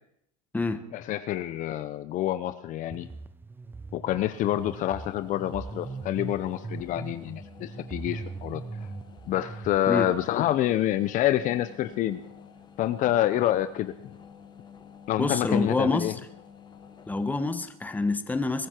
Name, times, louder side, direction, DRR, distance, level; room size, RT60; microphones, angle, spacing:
voice 1, 0.9-3.1 3.9-8.6 9.3-12.2 12.8-13.9 15.1-16.1, left 13 dB, 45° left, 12 dB, 0.9 m, -27 dB
sound 1, 2.9-9.8, right 4 dB, 10° right, 0.6 m, -40 dB
sound 2, 4.2-17.8, left 7 dB, 25° left, 1.4 m, -49 dB
voice 2, 15.2-16.1 17.1-18.7, left 3 dB, 10° left, 9 dB, 1.3 m, -27 dB
22.0 x 13.5 x 4.6 m, 0.73 s
supercardioid pair, 110°, 18 cm